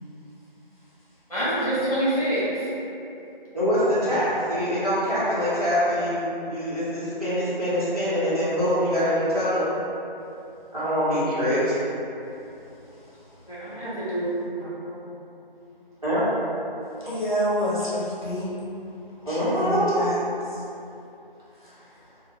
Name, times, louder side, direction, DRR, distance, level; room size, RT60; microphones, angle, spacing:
voice 1, 1.3-2.7 13.5-14.7, right 1 dB, 40° left, -11 dB, 1.2 m, -26 dB
voice 2, 3.5-9.7 10.7-11.8 16.0-16.2 19.3-19.9, equal, 40° right, -13 dB, 1.1 m, -24 dB
voice 3, 12.8-13.4 17.0-18.6 19.2-20.7 21.5-22.1, equal, 55° left, -9 dB, 0.9 m, -29 dB
3.0 x 2.3 x 3.1 m, 2.8 s
figure-of-eight pair, 175°, 29 cm